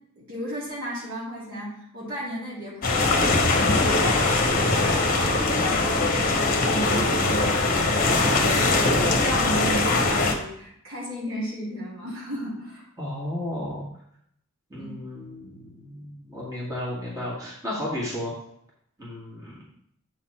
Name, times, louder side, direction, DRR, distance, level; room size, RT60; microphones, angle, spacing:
voice 1, 0.2-5.4 5.9-12.9 14.8-15.0, equal, 65° right, -6 dB, 3.2 m, -34 dB
sound 1, 2.8-10.3, left 2 dB, 40° left, 1.0 m, -21 dB
voice 2, 13.0-13.9 14.7-18.3 19.0-19.6, left 1 dB, 15° right, -7 dB, 2.0 m, -33 dB
8.1 x 4.1 x 4.4 m, 0.70 s
head